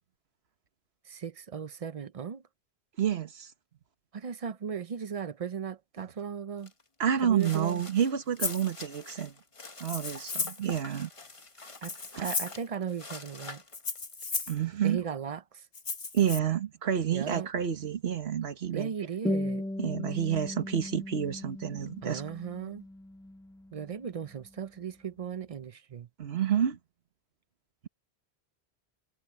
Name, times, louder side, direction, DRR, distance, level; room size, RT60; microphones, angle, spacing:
voice 1, 1.1-2.4 4.1-6.7 7.2-7.8 11.8-11.9 12.2-13.6 14.8-15.7 17.1-17.5 18.7-19.6 22.0-22.9 23.7-26.1, right 7 dB, 45° right, 0.5 m, -36 dB
voice 2, 3.0-3.5 7.0-9.3 9.8-11.1 12.2-12.3 14.5-15.0 16.1-18.9 19.8-22.2 26.2-26.8, right 9 dB, 80° right, 1.5 m, -29 dB
sound 1, 6.6-6.8 7.2-14.6, left 3 dB, 30° left, 1.2 m, -47 dB
Rattle (instrument), 8.4-8.7 9.8-10.7 11.7-12.6 13.7-14.6 15.7-16.4, left 4 dB, 65° left, 1.9 m, -34 dB
sound 2, 19.2-24.2, left 1 dB, 5° left, 0.5 m, -37 dB
omnidirectional pair, 1.0 m